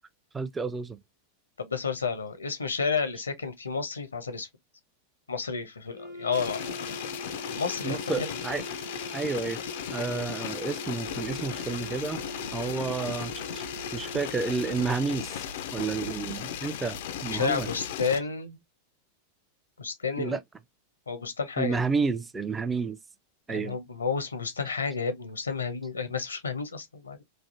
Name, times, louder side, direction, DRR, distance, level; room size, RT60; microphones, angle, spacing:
voice 1, 0.3-1.0 7.8-8.6 9.1-9.6 9.9-12.2 12.5-13.6 13.9-15.4 15.7-17.0 17.2-17.7 20.2-20.4 21.6-23.0 23.5-23.8, right 4 dB, 15° right, 0.4 m, -30 dB
voice 2, 1.6-4.5 5.3-7.1 7.5-8.4 10.1-10.2 17.2-18.6 19.8-20.4 21.1-21.8 23.5-27.2, left 5 dB, 75° left, 0.7 m, -31 dB
Wind instrument woodwind instrument, 5.9-15.2, equal, 45° right, 0.8 m, -42 dB
sound 1, 6.3-18.2, left 11 dB, 55° left, 0.4 m, -37 dB
sound 2, 11.0-17.9, right 3 dB, 85° right, 0.5 m, -47 dB
3.2 x 2.4 x 2.6 m
figure-of-eight pair, 90°, 0 cm